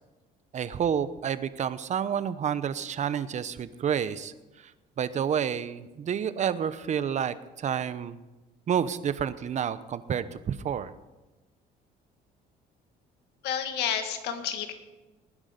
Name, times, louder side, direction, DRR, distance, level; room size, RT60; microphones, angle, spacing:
voice 1, 0.5-4.3 5.0-8.2 8.7-10.9, right 8 dB, 45° right, 14 dB, 0.8 m, -29 dB
voice 2, 13.4-14.7, left 8 dB, 80° left, 6 dB, 1.9 m, -30 dB
19.5 x 9.9 x 5.3 m, 1.1 s
cardioid pair, 110°, 17 cm